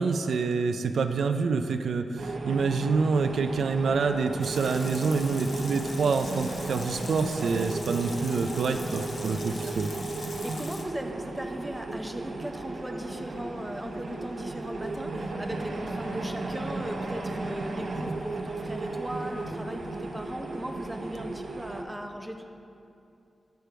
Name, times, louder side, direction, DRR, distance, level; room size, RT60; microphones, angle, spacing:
voice 1, 0.0-9.9, right 4 dB, 85° right, 7 dB, 0.4 m, -27 dB
sound 1, 2.2-21.8, right 3 dB, 65° right, 0.7 m, -35 dB
Water tap faucet / Sink (filling or washing) / Liquid, 4.4-10.8, left 3 dB, 50° left, 0.8 m, -43 dB
voice 2, 9.3-9.7 10.4-22.4, right 1 dB, 5° right, 4 dB, 0.5 m, -38 dB
10.5 x 5.1 x 4.5 m, 2.6 s
wide cardioid pair, 160°, 0 cm